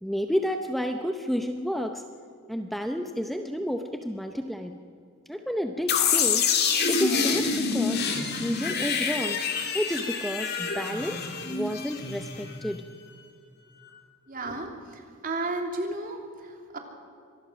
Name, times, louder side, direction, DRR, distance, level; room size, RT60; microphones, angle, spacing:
voice 1, 0.0-2.0 2.5-4.8 5.3-6.5 6.9-8.0 8.3-9.4 9.7-12.8, equal, ahead, 5 dB, 0.7 m, -30 dB
sound 1, 5.9-12.7, left 5 dB, 50° left, 2.7 m, -27 dB
voice 2, 14.3-16.8, right 2 dB, 40° right, 3 dB, 3.0 m, -33 dB
25.0 x 19.5 x 6.3 m, 2.5 s
head